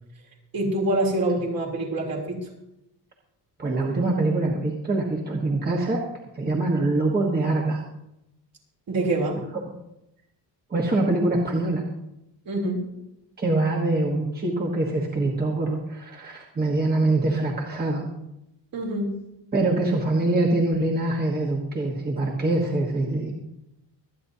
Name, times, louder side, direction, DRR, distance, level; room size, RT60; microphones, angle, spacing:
voice 1, 0.5-2.4 8.9-9.4 12.4-12.8 18.7-19.1, right 1 dB, 55° right, -2 dB, 3.3 m, -25 dB
voice 2, 3.6-6.0 6.3-7.8 10.7-11.8 13.4-18.0 19.5-23.3, right 2 dB, 20° right, -1 dB, 1.3 m, -24 dB
24.0 x 9.5 x 2.8 m, 0.85 s
wide cardioid pair, 175°, 42 cm